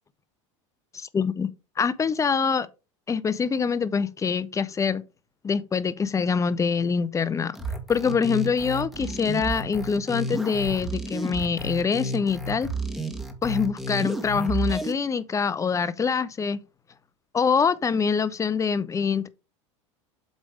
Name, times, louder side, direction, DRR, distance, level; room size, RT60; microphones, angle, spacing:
voice 1, 1.1-1.5 1.8-2.7 3.1-5.0 5.4-7.6 7.9-12.7 13.4-16.6 17.3-19.3, left 6 dB, 20° left, 0.7 m, -25 dB
sound 1, 7.5-14.9, right 2 dB, ahead, 1.6 m, -31 dB
8.1 x 3.3 x 5.0 m
hypercardioid pair, 95°, 16 cm